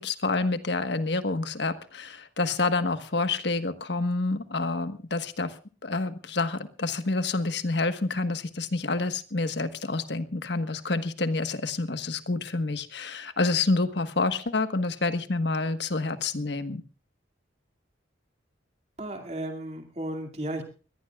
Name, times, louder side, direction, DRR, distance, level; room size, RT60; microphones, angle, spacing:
voice 1, 0.0-5.5 5.8-16.8, left 3 dB, 60° left, 10 dB, 1.4 m, -28 dB
voice 2, 19.0-20.6, right 1 dB, 35° right, 4 dB, 2.4 m, -34 dB
23.5 x 18.0 x 2.4 m, 0.37 s
head